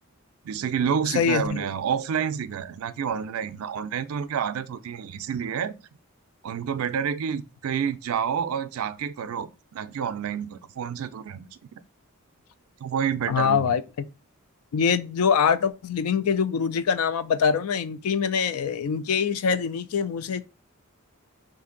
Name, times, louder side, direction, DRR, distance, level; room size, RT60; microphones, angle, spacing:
voice 1, 0.4-5.7 6.4-11.5 12.8-13.7, right 7 dB, 75° right, 0.4 m, -29 dB
voice 2, 1.2-1.7 13.3-13.8 14.7-20.4, left 6 dB, 80° left, 0.4 m, -24 dB
2.8 x 2.5 x 3.8 m
head